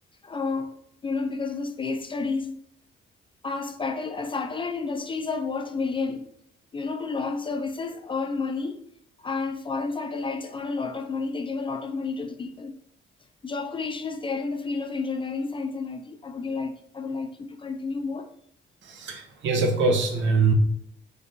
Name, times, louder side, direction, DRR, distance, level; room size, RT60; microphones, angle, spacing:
voice 1, 0.2-2.6 3.4-6.3 6.7-8.8 9.2-12.7 13.4-18.3, left 4 dB, 25° left, 0.4 m, -30 dB
voice 2, 18.9-20.5, right 4 dB, 70° right, 0.8 m, -23 dB
4.5 x 3.2 x 2.6 m
cardioid pair, 90°, 20 cm